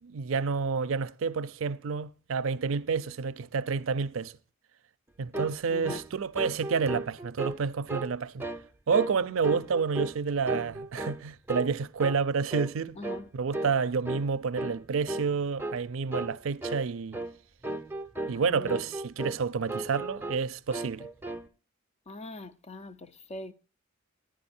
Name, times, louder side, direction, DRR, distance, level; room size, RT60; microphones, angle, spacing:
voice 1, 0.0-4.3 5.2-8.5 8.9-13.0 13.3-17.2 18.3-21.1, right 5 dB, 70° right, 0.5 m, -29 dB
sound 1, 5.3-5.6 5.8-6.1 6.4-7.6 7.9-8.1 8.4-8.7 8.9-9.2 9.4-10.2 10.5-11.2 11.5-11.7 12.0-12.2 12.5-12.7 13.0-13.2 13.5-13.8 14.1-14.3 14.6-14.8 15.1-15.3 15.6-15.8 16.1-16.4 16.6-16.8 17.1-17.3 17.6-18.4 18.7-19.4 19.7-20.4 20.7-21.5, right 2 dB, 10° right, 0.6 m, -35 dB
voice 2, 5.7-6.0 13.0-13.3 18.3-18.8 22.1-23.5, left 1 dB, 30° left, 0.6 m, -42 dB
11.5 x 9.9 x 4.3 m
head